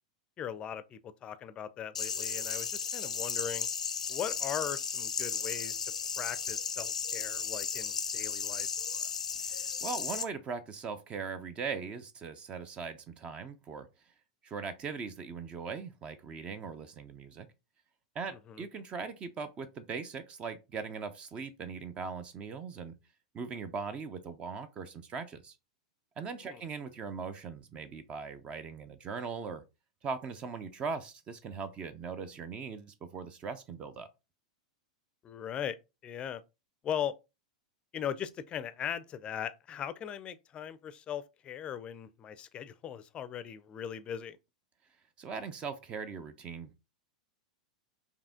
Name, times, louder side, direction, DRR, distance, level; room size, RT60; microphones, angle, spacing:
voice 1, 0.4-3.7 4.1-5.8 6.2-8.7 18.3-18.6 26.4-26.6 35.2-36.4 36.8-37.2 37.9-44.4, left 9 dB, 30° left, 0.5 m, -39 dB
sound 1, 1.9-10.2, left 6 dB, 80° left, 0.5 m, -35 dB
voice 2, 9.4-13.9 14.4-17.5 18.1-23.0 23.3-25.6 26.2-29.6 30.0-34.1 45.2-46.7, right 5 dB, 30° right, 0.6 m, -40 dB
4.8 x 2.8 x 3.6 m
figure-of-eight pair, 95°, 4 cm